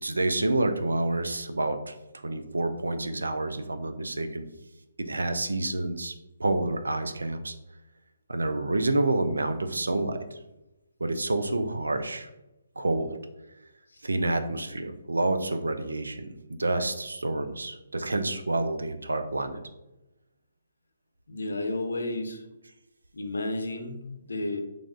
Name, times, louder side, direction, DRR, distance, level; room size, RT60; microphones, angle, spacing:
voice 1, 0.0-1.9 2.2-4.5 5.0-6.1 6.4-7.5 8.3-10.2 11.0-12.3 12.8-13.1 14.0-19.6, right 2 dB, 90° right, 8 dB, 0.4 m, -28 dB
voice 2, 21.3-22.4 23.1-24.0 24.3-24.6, left 2 dB, 80° left, 5 dB, 0.6 m, -31 dB
3.3 x 2.5 x 3.6 m, 0.97 s
figure-of-eight pair, 145°, 0 cm